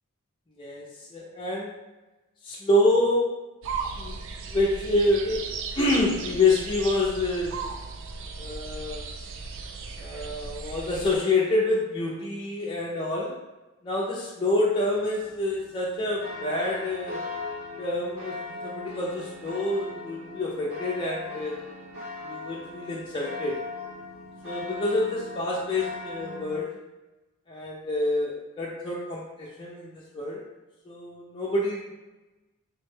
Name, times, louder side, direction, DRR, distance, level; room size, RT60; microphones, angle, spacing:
voice 1, 1.1-1.7 2.4-3.3 4.0-4.2 4.5-5.4 5.7-7.6 8.4-9.0 10.0-13.3 13.8-17.2 17.8-21.6 22.2-23.6 24.4-26.7 27.5-30.4 30.9-31.9, left 2 dB, 25° left, -5 dB, 0.4 m, -27 dB
sound 1, 3.6-11.2, right 5 dB, 65° right, 0.3 m, -36 dB
sound 2, 14.8-26.6, left 3 dB, 45° right, 1.0 m, -39 dB
3.3 x 2.1 x 3.2 m, 1.1 s
head